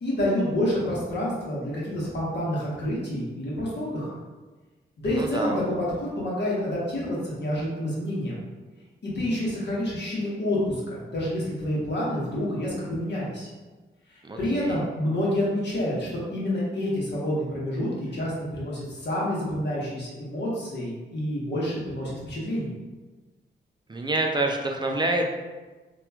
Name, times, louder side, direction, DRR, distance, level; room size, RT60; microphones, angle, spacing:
voice 1, 0.0-4.1 5.0-8.4 9.0-13.5 14.4-22.7, left 1 dB, 60° left, -6 dB, 1.0 m, -28 dB
voice 2, 5.2-5.5 14.2-14.8 23.9-25.3, right 2 dB, 25° right, 2 dB, 0.3 m, -27 dB
2.9 x 2.3 x 2.3 m, 1.2 s
cardioid pair, 70°, 20 cm